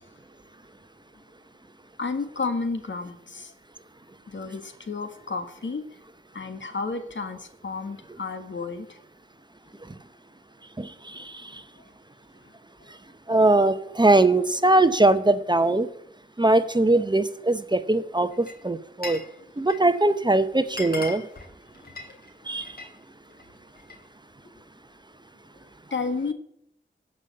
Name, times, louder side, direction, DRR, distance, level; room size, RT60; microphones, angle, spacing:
voice 1, 2.0-3.5 4.3-5.8 6.3-9.0 12.8-12.9 22.1-22.2 25.9-26.3, left 4 dB, 70° left, 7 dB, 1.7 m, -32 dB
voice 2, 10.8-11.3 13.3-15.9 16.4-19.2 19.6-21.2 22.5-22.6, right 2 dB, 20° right, 11 dB, 0.8 m, -21 dB
Glass, 18.3-19.3 19.6-20.0 20.4-20.5 20.7-22.9 23.3-24.1, left 3 dB, 50° left, 3.3 m, -39 dB
15.0 x 5.5 x 8.7 m, 0.72 s
wide cardioid pair, 70°, 20 cm